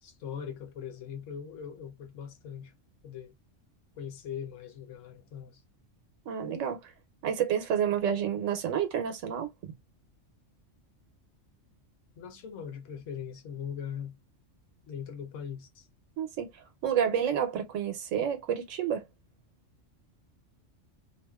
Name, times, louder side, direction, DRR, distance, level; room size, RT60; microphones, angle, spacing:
voice 1, 0.0-2.7 3.0-3.3 4.0-5.6 12.2-14.2 14.9-15.9, left 8 dB, 80° left, 1.1 m, -40 dB
voice 2, 6.3-6.9 7.2-9.7 16.2-16.5 16.8-19.0, right 8 dB, 85° right, 1.0 m, -29 dB
2.4 x 2.3 x 2.2 m
omnidirectional pair, 1.3 m